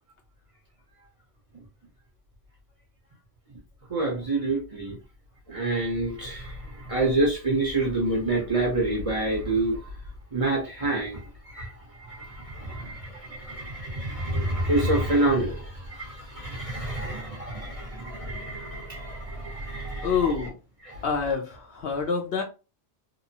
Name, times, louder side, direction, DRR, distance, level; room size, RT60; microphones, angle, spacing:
voice 1, 3.9-4.9 5.5-6.5 6.9-9.8 10.3-11.2 11.5-11.7 12.1-20.1 20.9-21.0, right 2 dB, 35° right, 0.7 m, -27 dB
voice 2, 20.0-20.6 21.0-22.4, left 5 dB, 60° left, 0.8 m, -26 dB
2.9 x 2.0 x 2.7 m
omnidirectional pair, 1.2 m